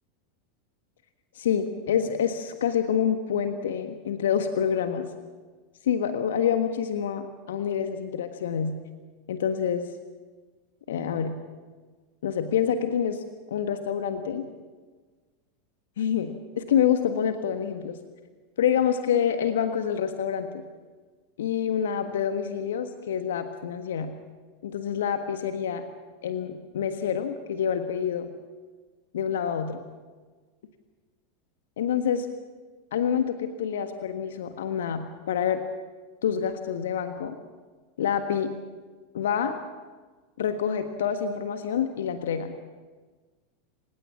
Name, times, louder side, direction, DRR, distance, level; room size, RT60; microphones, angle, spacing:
voice 1, 1.3-5.1 5.8-8.7 9.3-9.8 10.9-11.3 12.2-14.4 16.0-18.0 18.6-20.6 21.4-24.1 24.6-25.8 26.2-28.3 29.1-29.8 31.8-32.3 32.9-35.6 36.2-37.4 38.0-38.5 39.1-39.6 40.4-42.5, left 8 dB, 65° left, 8 dB, 1.4 m, -27 dB
28.0 x 16.5 x 7.3 m, 1.4 s
figure-of-eight pair, 85°, 0 cm